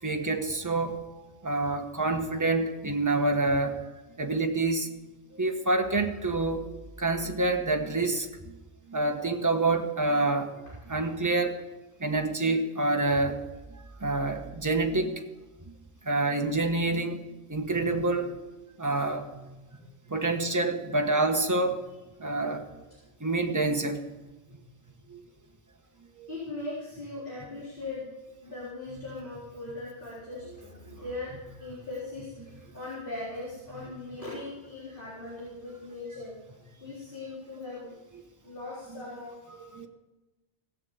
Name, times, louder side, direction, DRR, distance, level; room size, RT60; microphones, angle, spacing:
voice 1, 0.0-1.0 1.4-3.8 4.2-4.9 5.3-8.6 8.9-11.6 12.0-13.5 14.0-15.2 16.0-17.2 17.5-18.4 18.8-19.5 20.1-21.8 22.2-22.8 23.2-24.0 25.1-25.2 26.2-26.3 30.8-31.0 33.7-33.8 38.1-38.2 38.9-39.0 39.5-39.9, right 2 dB, 15° right, 4 dB, 1.2 m, -27 dB
voice 2, 26.3-28.1 28.4-31.3 31.6-36.3 36.7-37.9 38.4-39.3, left 2 dB, 50° left, -7 dB, 3.9 m, -39 dB
16.5 x 7.4 x 7.8 m, 1.1 s
omnidirectional pair, 1.1 m